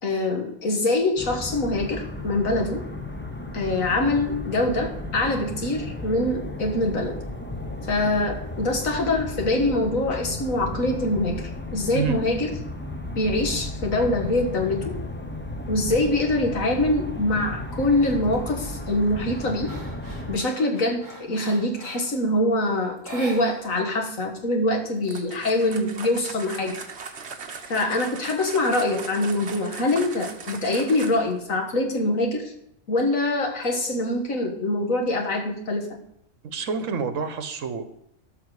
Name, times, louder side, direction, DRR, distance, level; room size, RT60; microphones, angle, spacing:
voice 1, 0.0-2.8 3.5-7.1 7.9-11.4 11.7-12.5 13.2-15.0 15.7-19.7 20.3-26.8 27.7-32.5 32.9-36.0, left 2 dB, 80° left, 3 dB, 2.0 m, -24 dB
sound 1, 1.2-20.4, left 1 dB, 10° left, 0.7 m, -34 dB
sound 2, 18.0-18.4 18.8-22.2 23.0-23.9 24.2-24.3 24.7-25.6, right 1 dB, 15° right, 1.8 m, -42 dB
sound 3, 25.0-31.4, right 5 dB, 55° right, 1.4 m, -38 dB
voice 2, 36.4-37.8, right 6 dB, 75° right, 10 dB, 1.4 m, -28 dB
12.5 x 6.0 x 4.9 m, 0.74 s
omnidirectional pair, 1.4 m